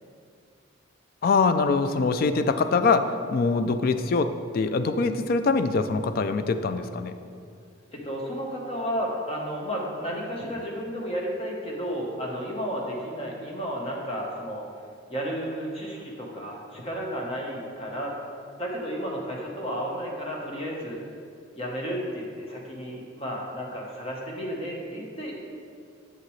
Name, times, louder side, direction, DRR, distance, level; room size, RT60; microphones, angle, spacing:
voice 1, 1.2-7.1, left 4 dB, 45° left, 10 dB, 0.3 m, -23 dB
voice 2, 7.9-14.6 15.1-18.1 18.6-21.0 21.6-25.4, equal, 30° left, -2 dB, 1.0 m, -32 dB
7.5 x 6.5 x 3.2 m, 2.3 s
head